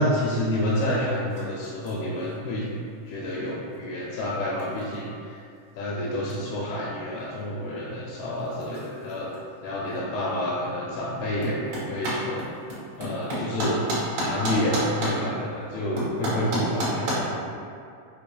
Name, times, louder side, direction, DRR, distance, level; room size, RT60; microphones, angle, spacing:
voice 1, 0.0-2.7 3.1-5.4 5.7-9.3 9.6-12.4 13.0-13.8 14.2-17.5, left 1 dB, 80° left, -5 dB, 2.3 m, -28 dB
sound 1, 0.7-17.2, right 1 dB, 55° right, 2.0 m, -35 dB
6.4 x 2.7 x 2.3 m, 2.4 s
omnidirectional pair, 4.6 m